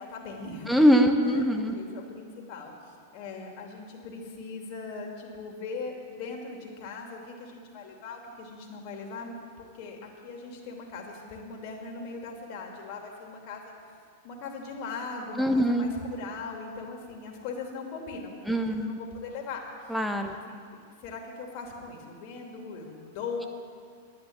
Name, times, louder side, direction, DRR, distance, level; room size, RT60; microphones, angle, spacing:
voice 1, 0.0-0.7 1.2-13.7 14.2-20.0 20.3-23.5, left 4 dB, 50° left, 0 dB, 2.7 m, -40 dB
voice 2, 0.7-1.8 15.4-15.9 18.5-19.0 19.9-20.3, equal, ahead, 5 dB, 1.3 m, -23 dB
11.0 x 10.5 x 8.5 m, 2.1 s
hypercardioid pair, 105°, 0 cm